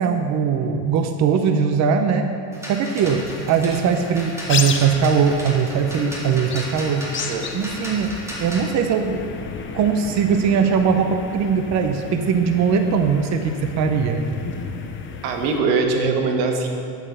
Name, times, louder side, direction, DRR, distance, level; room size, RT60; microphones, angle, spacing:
voice 1, 0.0-2.3 2.7-7.1 7.5-9.2 9.7-14.2, right 6 dB, 35° right, 6 dB, 0.7 m, -20 dB
sound 1, 2.5-8.7, equal, 5° right, 2.2 m, -35 dB
sound 2, 3.0-15.6, left 6 dB, 25° left, 0.7 m, -33 dB
voice 2, 15.2-16.7, right 4 dB, 85° right, 3 dB, 1.8 m, -21 dB
9.0 x 8.8 x 6.7 m, 2.5 s
cardioid pair, 140°, 47 cm